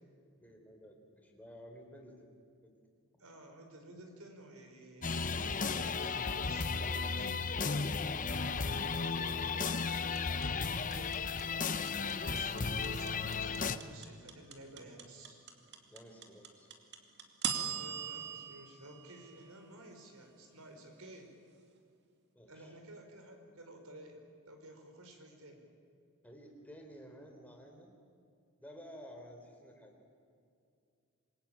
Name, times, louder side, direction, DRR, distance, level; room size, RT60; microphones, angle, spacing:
voice 1, 0.4-2.7 15.9-16.7 22.3-22.8 26.2-27.9 28.6-29.9, equal, 5° left, 2 dB, 3.7 m, -53 dB
voice 2, 3.2-7.3 8.4-11.4 12.0-15.4 17.5-21.3 22.5-24.2 24.5-25.6, right 1 dB, 75° right, 4 dB, 5.0 m, -53 dB
sound 1, 5.0-13.8, left 5 dB, 35° left, 0.8 m, -34 dB
sound 2, 9.7-19.8, right 7 dB, 50° right, 2.6 m, -41 dB
26.5 x 22.5 x 8.9 m, 2.4 s
head